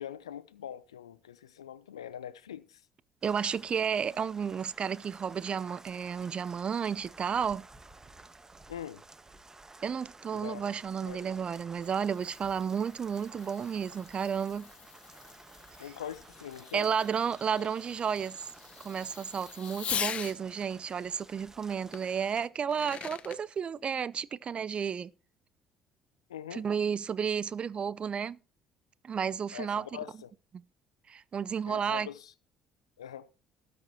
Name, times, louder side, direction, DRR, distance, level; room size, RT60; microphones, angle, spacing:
voice 1, 0.0-2.8 8.7-9.0 10.3-10.8 11.0-11.3 15.8-16.9 17.6-17.7 26.3-26.6 29.5-30.3 31.7-32.3 33.0-33.3, left 10 dB, 85° left, 0.7 m, -43 dB
sound 1, 3.2-22.5, right 3 dB, 20° right, 1.4 m, -53 dB
voice 2, 3.2-7.7 9.8-14.7 16.7-18.5 18.8-25.1 26.5-28.4 29.0-29.9 31.1-32.1, right 7 dB, 40° right, 0.7 m, -32 dB
Fireworks, 11.7-20.4 21.9-22.0 22.5-23.4, left 8 dB, 45° left, 1.0 m, -42 dB
18.5 x 7.7 x 2.8 m
figure-of-eight pair, 55°, 3 cm